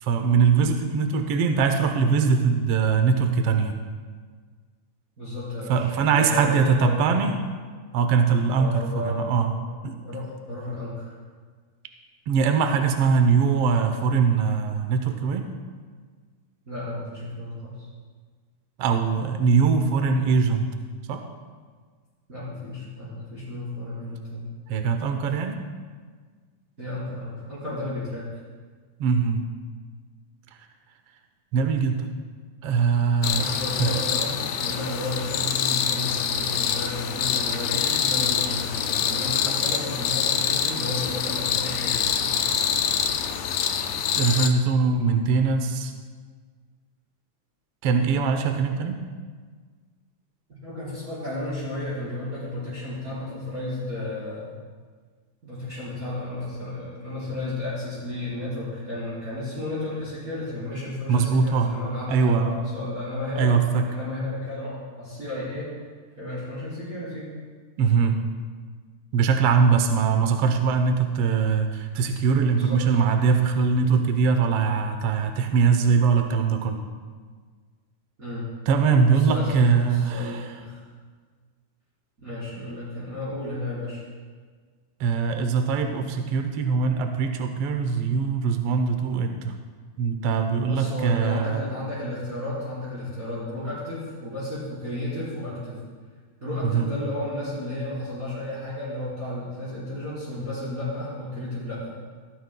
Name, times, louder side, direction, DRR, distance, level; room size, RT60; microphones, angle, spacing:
voice 1, 0.0-3.8 5.7-7.4 7.9-9.5 9.8-9.9 12.3-15.5 18.8-20.7 21.1-21.2 24.7-25.6 29.0-29.4 31.5-32.1 32.6-33.9 44.1-45.9 47.8-49.0 61.1-61.7 62.1-62.5 63.4-63.8 67.8-68.2 69.1-76.8 78.7-80.4 85.0-89.5 90.0-91.6 96.6-96.9, right 5 dB, 70° right, 6 dB, 1.4 m, -22 dB
voice 2, 5.2-5.9 6.2-7.3 8.5-9.3 10.0-11.1 16.7-17.9 22.3-24.5 26.8-28.3 33.4-42.6 50.5-54.5 55.4-63.5 63.9-65.7 66.1-67.3 72.3-73.0 78.2-78.5 79.1-80.8 82.2-84.0 90.6-95.8 96.4-101.9, left 1 dB, 25° right, -11 dB, 4.6 m, -33 dB
sound 1, 33.2-44.5, left 8 dB, 75° left, 1.8 m, -25 dB
18.0 x 14.5 x 2.2 m, 1.5 s
omnidirectional pair, 3.4 m